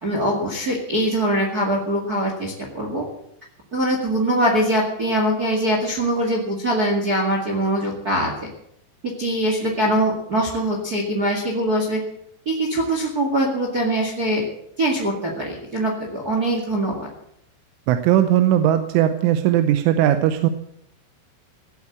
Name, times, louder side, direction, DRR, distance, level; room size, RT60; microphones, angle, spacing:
voice 1, 0.0-3.0 3.7-8.3 9.2-12.0 12.4-14.4 14.8-16.9, right 1 dB, 45° right, 1 dB, 1.2 m, -22 dB
voice 2, 17.9-20.5, right 12 dB, 90° right, 8 dB, 3.3 m, -18 dB
16.5 x 8.4 x 8.4 m, 0.76 s
omnidirectional pair, 5.5 m